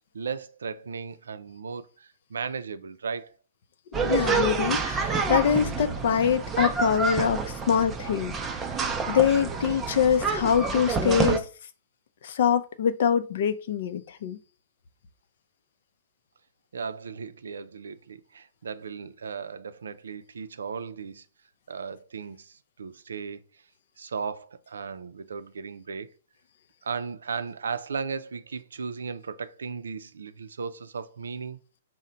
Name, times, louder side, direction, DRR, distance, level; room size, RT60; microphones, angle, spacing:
voice 1, 0.1-3.3 16.7-21.2 21.7-23.4 24.0-26.1 26.8-31.6, right 5 dB, 90° right, 0.4 m, -36 dB
voice 2, 3.9-8.6 9.1-11.5 12.2-14.4, left 8 dB, 65° left, 0.5 m, -24 dB
sound 1, 3.9-11.4, right 5 dB, 15° right, 0.5 m, -28 dB
4.2 x 2.1 x 3.8 m
hypercardioid pair, 140°, 0 cm